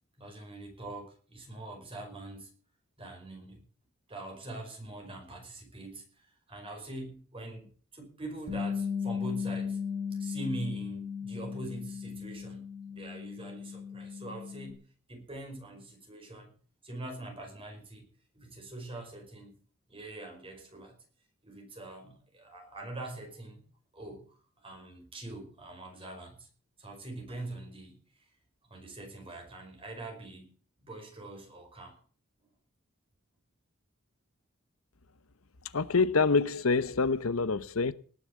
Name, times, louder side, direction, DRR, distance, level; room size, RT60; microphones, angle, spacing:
voice 1, 0.2-2.5 3.0-3.6 4.1-9.8 10.2-16.5 16.8-18.1 18.3-19.6 19.9-21.0 21.4-23.6 23.9-26.5 26.8-28.0 28.7-32.0, right 2 dB, 25° right, 5.2 m, -43 dB
Bass guitar, 8.5-14.7, left 6 dB, 50° right, 2.8 m, -36 dB
voice 2, 35.7-37.9, left 4 dB, 85° left, 0.9 m, -26 dB
19.0 x 7.1 x 8.4 m
head